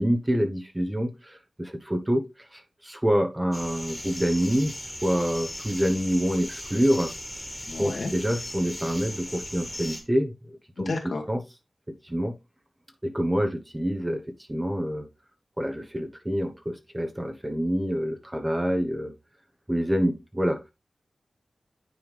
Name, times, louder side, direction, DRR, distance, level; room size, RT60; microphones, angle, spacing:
voice 1, 0.0-2.3 2.5-7.1 7.8-11.4 12.0-12.3 13.0-14.2 14.5-15.0 15.6-19.1 19.7-20.6, equal, 15° right, 4 dB, 1.1 m, -27 dB
sound 1, 3.5-10.0, left 1 dB, 15° left, 1.8 m, -38 dB
voice 2, 7.7-8.1 10.8-11.2, left 3 dB, 75° left, 1 dB, 2.0 m, -31 dB
9.5 x 3.5 x 3.4 m, 0.25 s
wide cardioid pair, 65°, 0 cm